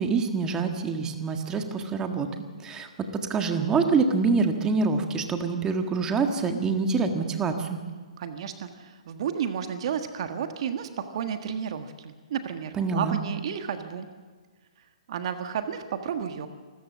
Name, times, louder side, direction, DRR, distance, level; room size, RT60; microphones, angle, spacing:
voice 1, 0.0-2.9 3.3-7.8 12.8-13.2, right 4 dB, 15° right, 6 dB, 1.7 m, -26 dB
voice 2, 8.2-14.1 15.1-16.5, right 8 dB, 55° right, 8 dB, 1.5 m, -32 dB
27.0 x 14.0 x 7.4 m, 1.4 s
hypercardioid pair, 135°, 4 cm